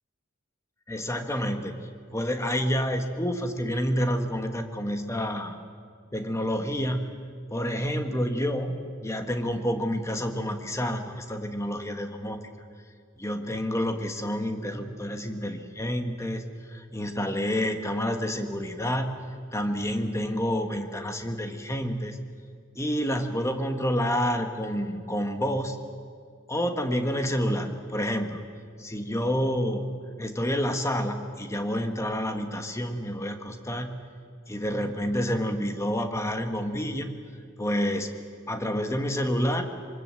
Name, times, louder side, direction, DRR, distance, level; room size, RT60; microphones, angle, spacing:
voice 1, 0.9-1.7 2.1-5.6 6.1-7.1 7.5-8.7 9.0-12.4 13.2-19.2 19.5-22.2 22.8-25.8 26.5-28.4 28.8-29.8 30.2-34.0 34.5-37.1 37.6-38.1 38.5-39.7, equal, 15° left, 5 dB, 1.7 m, -28 dB
26.0 x 24.5 x 7.8 m, 2.1 s
head